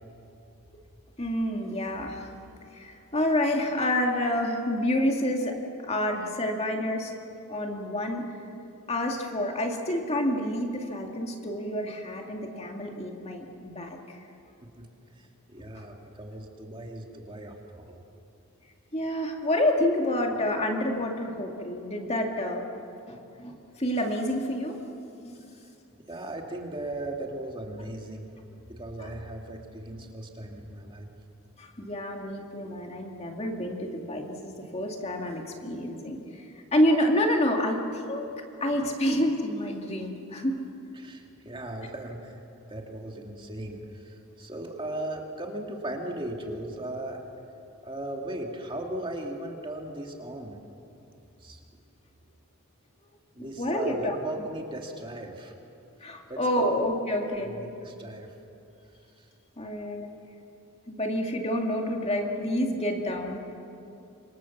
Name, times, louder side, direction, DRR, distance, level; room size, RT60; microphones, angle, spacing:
voice 1, 1.2-2.3 2.7-5.6 5.9-7.1 7.5-8.2 8.9-14.2 15.6-15.7 18.9-22.6 23.1-24.8 25.1-25.4 29.0-29.1 31.6-38.3 38.6-40.6 53.6-54.2 56.0-57.6 59.6-60.1 60.9-63.5, left 1 dB, 30° left, 2 dB, 2.2 m, -28 dB
voice 2, 15.1-18.0 25.5-25.7 26.1-28.3 28.7-31.1 41.0-42.4 42.7-47.2 47.8-50.6 51.4-51.6 53.3-55.5 56.3-56.7 57.3-58.3 59.2-59.3, right 1 dB, 20° right, 1 dB, 2.3 m, -37 dB
26.5 x 25.0 x 7.2 m, 2.7 s
head